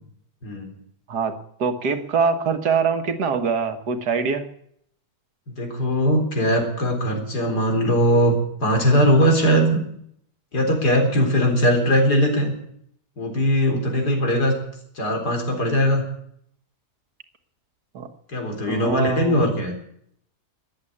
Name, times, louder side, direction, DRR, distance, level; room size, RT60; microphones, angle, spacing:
voice 1, 0.4-0.7 5.6-8.3 8.6-9.8 10.5-12.5 13.2-14.6 15.0-16.0 18.3-19.7, equal, 85° left, 3 dB, 4.4 m, -20 dB
voice 2, 1.6-4.5 17.9-18.1 18.7-19.4, right 5 dB, 85° right, 8 dB, 2.0 m, -23 dB
14.0 x 10.5 x 9.9 m, 0.70 s
omnidirectional pair, 1.7 m